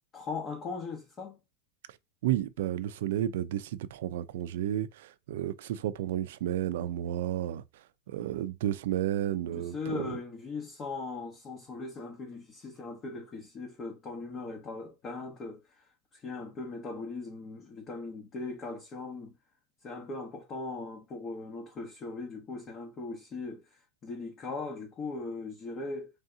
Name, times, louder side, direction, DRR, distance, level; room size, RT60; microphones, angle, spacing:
voice 1, 0.1-1.4 9.6-15.8 16.1-19.3 19.8-26.1, left 3 dB, 30° left, 0.9 m, -39 dB
voice 2, 2.2-7.6 8.1-10.2, right 12 dB, 75° right, 0.4 m, -32 dB
3.4 x 2.7 x 3.7 m
supercardioid pair, 140°, 0 cm